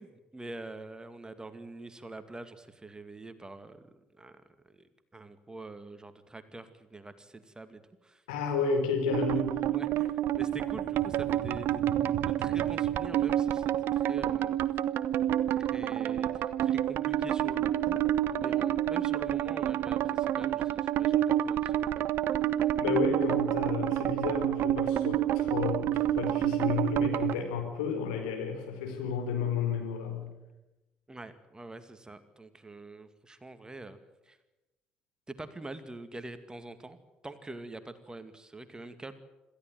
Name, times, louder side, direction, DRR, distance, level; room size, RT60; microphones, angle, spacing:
voice 1, 0.0-4.4 4.7-8.2 9.7-11.8 12.2-14.6 15.5-22.1 31.1-34.0 34.3-34.4 35.3-39.2, right 2 dB, 15° right, 10 dB, 2.2 m, -45 dB
voice 2, 8.3-9.7 22.8-30.3, left 6 dB, 70° left, 4 dB, 4.7 m, -32 dB
sound 1, 9.1-27.3, right 12 dB, 55° right, 0.9 m, -28 dB
27.0 x 14.5 x 9.2 m, 1.0 s
figure-of-eight pair, 50°, 4 cm